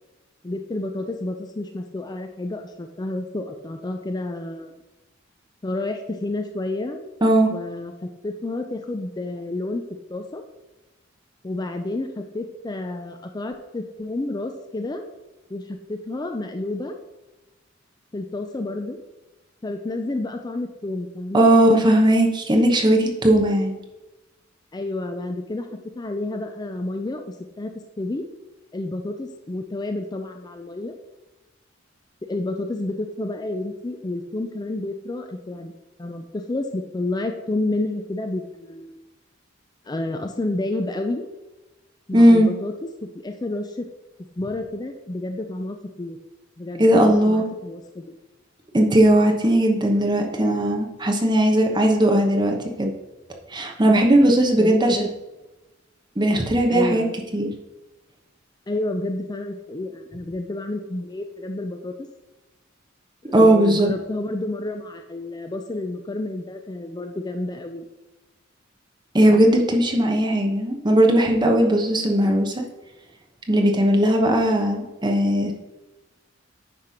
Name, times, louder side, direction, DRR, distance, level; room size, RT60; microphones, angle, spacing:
voice 1, 0.4-4.8 5.6-7.0 7.5-9.8 10.1-10.4 11.4-15.1 15.5-17.0 18.1-19.0 19.6-21.4 24.7-25.7 25.9-27.7 28.0-28.2 28.7-31.0 32.3-35.7 36.0-39.0 39.9-41.3 42.1-42.7 43.1-43.9 44.4-46.2 46.6-48.1 54.6-55.1 56.7-57.1 58.7-62.1 63.2-67.9, left 2 dB, 20° left, 5 dB, 0.5 m, -30 dB
voice 2, 21.3-23.8 42.1-42.5 46.8-47.4 48.7-52.9 53.5-55.0 56.2-57.0 57.3-57.5 63.3-63.9 69.1-72.6 73.5-75.5, right 1 dB, 25° right, 2 dB, 1.0 m, -18 dB
9.6 x 3.3 x 5.7 m, 1.0 s
head